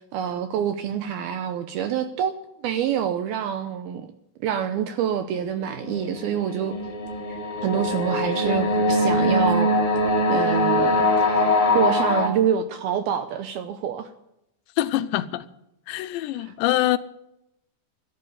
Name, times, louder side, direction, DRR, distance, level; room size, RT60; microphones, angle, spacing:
voice 1, 0.1-4.1 4.4-6.8 7.3-9.7 10.3-14.1 16.4-16.5, right 9 dB, 80° right, 2.3 m, -27 dB
sound 1, 5.6-12.3, left 1 dB, 20° left, 2.3 m, -22 dB
voice 2, 14.8-15.4 15.9-17.0, left 15 dB, 80° left, 2.9 m, -24 dB
13.5 x 11.0 x 9.6 m
omnidirectional pair, 5.2 m